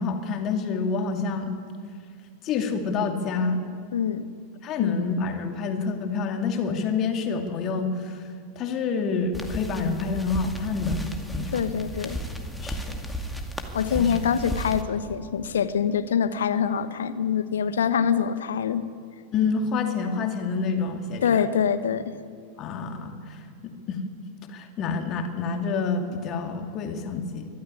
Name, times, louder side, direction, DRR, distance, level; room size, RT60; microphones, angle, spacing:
voice 1, 0.0-1.5 2.4-3.6 4.6-8.3 8.6-11.0 11.3-11.6 12.6-13.0 14.0-14.1 19.3-21.4 22.6-23.4 23.9-24.0 24.5-27.5, left 4 dB, 35° left, 4 dB, 2.4 m, -28 dB
voice 2, 3.9-4.3 4.8-5.0 11.5-12.2 13.7-18.8 21.2-22.1, left 7 dB, 65° left, 13 dB, 1.1 m, -25 dB
sound 1, 9.3-14.8, equal, 5° left, 2.2 m, -34 dB
22.5 x 13.0 x 9.8 m, 2.1 s
figure-of-eight pair, 90°, 0 cm